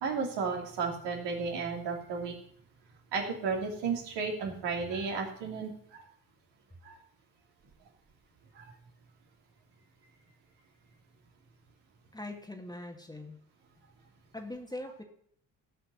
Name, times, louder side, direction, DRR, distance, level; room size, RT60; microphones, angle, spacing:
voice 1, 0.0-2.3 3.1-6.0 6.8-7.0 8.5-8.7, right 5 dB, 60° right, 1 dB, 2.9 m, -33 dB
voice 2, 12.1-13.4 14.3-15.0, left 1 dB, 10° left, 3 dB, 2.1 m, -41 dB
15.5 x 5.7 x 6.9 m, 0.62 s
figure-of-eight pair, 45°, 46 cm